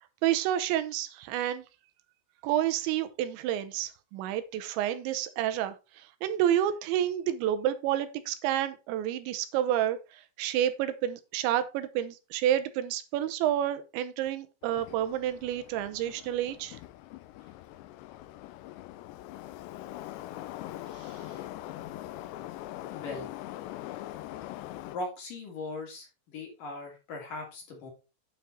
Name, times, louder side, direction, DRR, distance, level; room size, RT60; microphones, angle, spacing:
voice 1, 0.2-1.6 2.4-10.0 10.4-16.8, right 11 dB, 85° right, 11 dB, 3.2 m, -29 dB
Subway metro underground, 14.6-25.0, left 14 dB, 80° left, 2.8 m, -42 dB
voice 2, 22.9-23.3 24.9-26.1 26.3-27.9, left 2 dB, 50° left, 0 dB, 4.3 m, -39 dB
9.1 x 5.8 x 4.2 m, 0.29 s
omnidirectional pair, 5.1 m